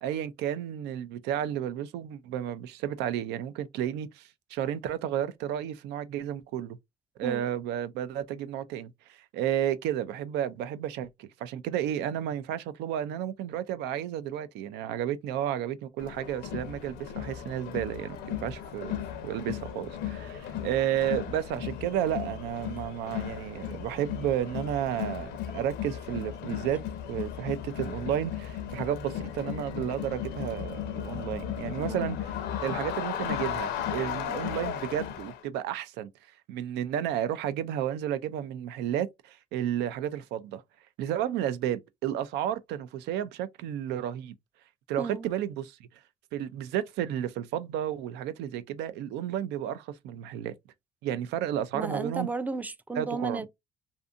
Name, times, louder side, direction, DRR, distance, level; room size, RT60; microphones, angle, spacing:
voice 1, 0.0-6.8 7.2-26.8 27.1-32.4 32.6-36.1 36.5-40.6 41.0-44.3 44.9-45.8 46.3-50.6 51.0-52.3 53.0-53.4, right 10 dB, 85° right, 0.4 m, -32 dB
Crowd, 16.0-35.4, left 10 dB, 80° left, 0.6 m, -36 dB
voice 2, 45.0-45.3 51.7-53.5, right 3 dB, 10° right, 0.3 m, -34 dB
2.6 x 2.5 x 2.4 m
cardioid pair, 110°, 17 cm